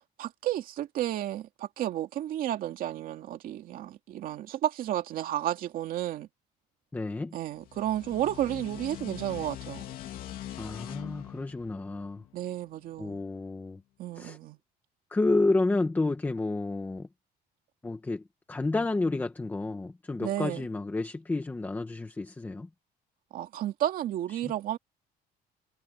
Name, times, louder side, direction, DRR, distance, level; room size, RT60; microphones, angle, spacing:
voice 1, 0.2-6.3 7.3-9.8 12.3-13.2 14.0-14.6 20.2-20.6 23.3-24.8, right 12 dB, 55° right, 2.3 m, -32 dB
voice 2, 6.9-7.4 10.6-12.2 13.0-13.8 14.1-14.4 15.1-17.1 17.8-22.7 24.3-24.5, left 2 dB, 10° left, 1.7 m, -30 dB
sound 1, 7.5-12.9, left 12 dB, 60° left, 2.8 m, -42 dB
cardioid pair, 175°, 17 cm